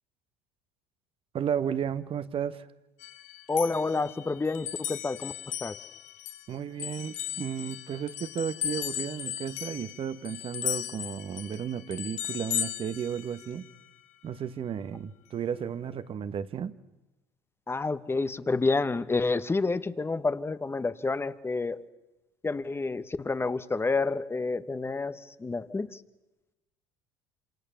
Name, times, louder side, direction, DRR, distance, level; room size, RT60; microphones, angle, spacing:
voice 1, 1.3-2.7 6.5-13.7 14.2-16.8, right 8 dB, 45° right, 13 dB, 1.5 m, -33 dB
sound 1, 3.0-6.5 6.8-13.7, left 12 dB, 65° left, 1.9 m, -36 dB
voice 2, 3.5-5.8 17.7-21.8 22.4-26.0, left 3 dB, 20° left, 13 dB, 1.4 m, -29 dB
27.0 x 27.0 x 7.1 m, 1.0 s
hypercardioid pair, 75°, 13 cm